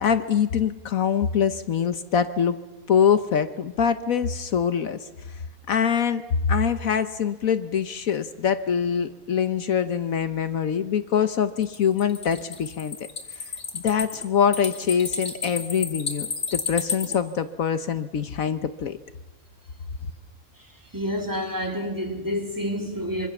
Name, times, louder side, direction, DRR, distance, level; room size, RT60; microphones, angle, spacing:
voice 1, 0.0-2.6 2.9-5.4 5.7-6.2 6.5-13.0 13.3-13.4 13.7-19.0, left 7 dB, 70° left, 1.4 m, -24 dB
sound 1, 11.6-17.2, left 5 dB, 50° left, 3.2 m, -32 dB
voice 2, 20.6-23.3, equal, 15° right, 3.2 m, -29 dB
25.5 x 24.5 x 7.1 m
omnidirectional pair, 1.5 m